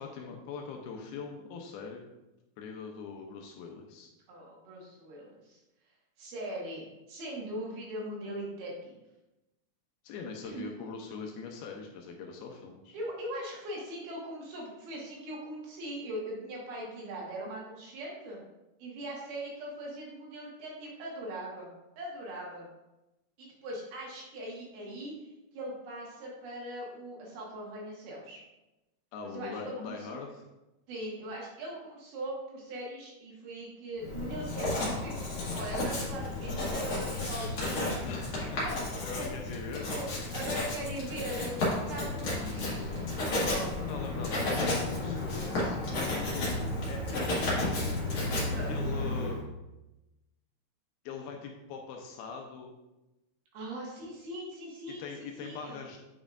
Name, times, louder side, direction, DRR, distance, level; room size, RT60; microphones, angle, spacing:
voice 1, 0.0-2.0 2.6-4.1 10.0-12.9 29.1-30.4 35.6-35.9 38.1-38.6 39.0-39.9 42.2-42.9 43.2-46.5 46.9-48.0 48.5-49.4 51.1-52.7 55.0-56.0, left 5 dB, 80° left, 2 dB, 2.4 m, -42 dB
voice 2, 4.3-5.6 6.2-9.0 10.4-10.7 12.9-18.4 18.8-21.7 22.0-22.7 23.4-28.4 29.2-30.2 30.9-35.2 35.5-37.9 38.6-38.7 39.2-39.3 39.9-41.6 41.9-43.1 43.4-43.7 48.5-48.7 53.5-55.8, right 1 dB, 70° right, -3 dB, 3.1 m, -40 dB
Writing, 34.0-49.4, left 2 dB, 45° left, 1.9 m, -32 dB
8.8 x 5.4 x 2.5 m, 0.99 s
omnidirectional pair, 4.7 m